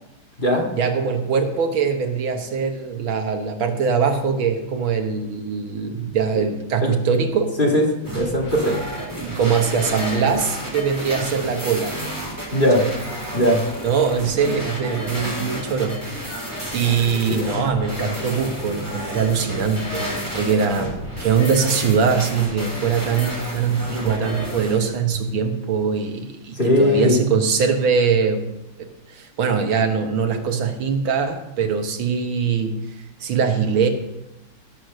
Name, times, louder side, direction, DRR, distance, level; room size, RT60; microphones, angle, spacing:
voice 1, 0.8-7.5 9.2-11.9 12.8-12.9 13.8-16.2 16.7-28.5 28.8-32.8 33.2-33.9, right 6 dB, 80° right, 5 dB, 2.1 m, -22 dB
sound 1, 8.0-24.8, equal, 10° right, 3.4 m, -31 dB
voice 2, 8.1-8.8 12.5-12.9 13.3-13.6 17.3-17.5 26.5-27.2, left 1 dB, 25° left, 0 dB, 2.1 m, -18 dB
16.5 x 6.5 x 6.5 m, 0.94 s
omnidirectional pair, 2.2 m